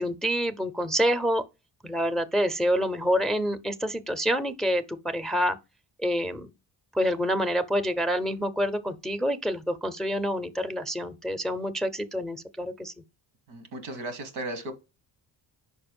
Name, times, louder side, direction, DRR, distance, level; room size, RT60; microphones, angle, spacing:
voice 1, 0.0-1.4 1.8-5.6 6.0-6.5 6.9-12.9, equal, ahead, 0.5 m, -27 dB
voice 2, 13.5-14.7, right 2 dB, 90° right, 1.4 m, -35 dB
5.2 x 4.3 x 5.2 m
cardioid pair, 70°, 48 cm